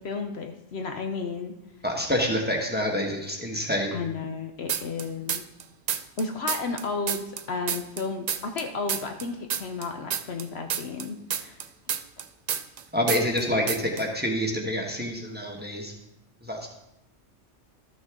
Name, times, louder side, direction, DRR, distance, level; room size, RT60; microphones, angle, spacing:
voice 1, 0.0-1.5 3.9-5.4 6.2-11.6, left 4 dB, 60° left, 5 dB, 0.9 m, -33 dB
voice 2, 1.8-3.9 12.9-15.9 16.4-16.7, left 1 dB, 10° right, 0 dB, 1.1 m, -27 dB
sound 1, 4.7-5.6 5.9-8.6 8.9-12.8 13.1-13.4 13.7-14.0, right 8 dB, 85° right, 0.3 m, -29 dB
13.0 x 6.3 x 3.6 m, 0.89 s
omnidirectional pair, 1.3 m